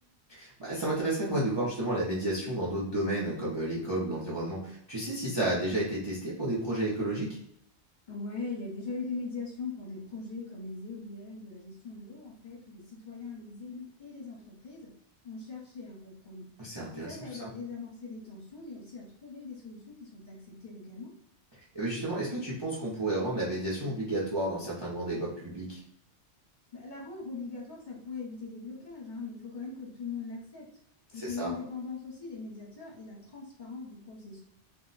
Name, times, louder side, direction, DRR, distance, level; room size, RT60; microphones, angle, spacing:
voice 1, 0.3-7.3 16.6-17.5 21.6-25.8 31.1-31.5, right 1 dB, 30° right, -6 dB, 0.5 m, -32 dB
voice 2, 8.1-14.9 15.2-16.5 16.9-21.1 26.7-30.7 31.1-34.4, left 4 dB, 45° left, -5 dB, 1.0 m, -41 dB
2.2 x 2.1 x 3.8 m, 0.71 s
omnidirectional pair, 1.2 m